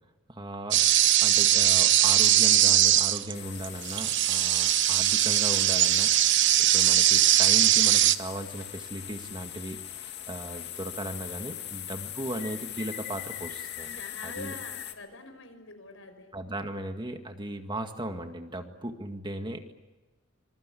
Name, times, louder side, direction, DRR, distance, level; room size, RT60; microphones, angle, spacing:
voice 1, 0.3-0.9 1.2-6.1 6.6-14.6 16.3-19.7, right 1 dB, 25° right, 6 dB, 1.9 m, -37 dB
sound 1, 0.7-3.3 3.6-8.2, right 12 dB, 60° right, 0.9 m, -21 dB
sound 2, 3.3-14.9, left 10 dB, 60° left, 2.2 m, -41 dB
voice 2, 14.0-16.3, left 3 dB, 80° left, 7 dB, 5.5 m, -45 dB
26.5 x 22.0 x 8.5 m, 1.2 s
head